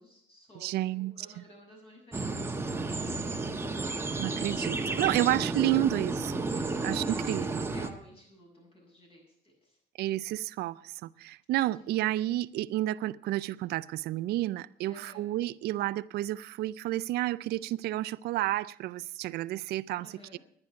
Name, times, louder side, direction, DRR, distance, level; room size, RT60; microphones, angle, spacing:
voice 1, 0.0-2.8 5.0-5.6 6.5-6.6 7.0-9.8 11.8-12.1 14.9-15.3 20.0-20.4, equal, 35° left, 7.7 m, -53 dB
voice 2, 0.6-1.1 4.2-6.4 6.8-7.6 10.0-20.1 20.3-20.4, right 15 dB, 70° right, 0.4 m, -31 dB
sound 1, 2.1-7.9, right 3 dB, 15° right, 1.1 m, -32 dB
10.5 x 9.8 x 8.8 m
cardioid pair, 110°, 17 cm